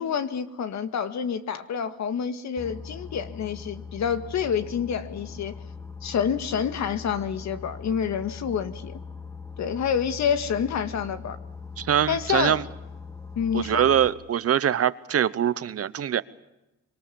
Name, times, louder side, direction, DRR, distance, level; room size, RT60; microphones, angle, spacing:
voice 1, 0.0-5.5 6.0-9.0 9.6-11.4 12.1-12.6 13.4-13.8, left 7 dB, 65° left, 1.9 m, -28 dB
Boat Water vehicle, 2.6-14.1, left 5 dB, 10° left, 1.9 m, -41 dB
voice 2, 11.8-12.6 13.5-16.2, right 9 dB, 50° right, 1.0 m, -23 dB
25.5 x 24.0 x 7.1 m
cardioid pair, 90°, 30 cm